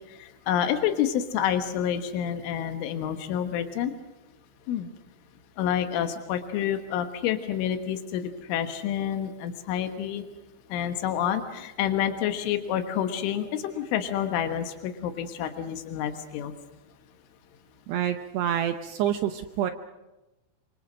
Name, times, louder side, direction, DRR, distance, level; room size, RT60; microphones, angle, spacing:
voice 1, 0.2-3.9 4.7-4.9 5.6-10.2 10.7-16.5, left 9 dB, 90° left, 8 dB, 3.9 m, -28 dB
voice 2, 17.9-19.7, right 10 dB, 75° right, 7 dB, 2.7 m, -27 dB
26.0 x 25.5 x 6.3 m, 1.0 s
omnidirectional pair, 5.4 m